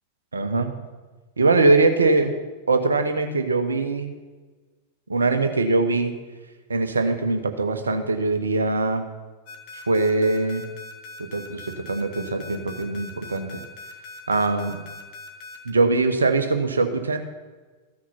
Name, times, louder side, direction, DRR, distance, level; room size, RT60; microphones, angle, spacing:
voice 1, 0.3-0.7 1.4-2.3 2.7-4.1 5.1-6.1 6.7-9.0 9.9-10.6 11.2-13.6 14.3-14.8 15.6-17.2, right 3 dB, 75° right, 7 dB, 1.0 m, -22 dB
sound 1, 9.5-15.7, left 2 dB, 45° left, 1.6 m, -41 dB
14.5 x 6.3 x 5.8 m, 1.3 s
figure-of-eight pair, 90°, 0 cm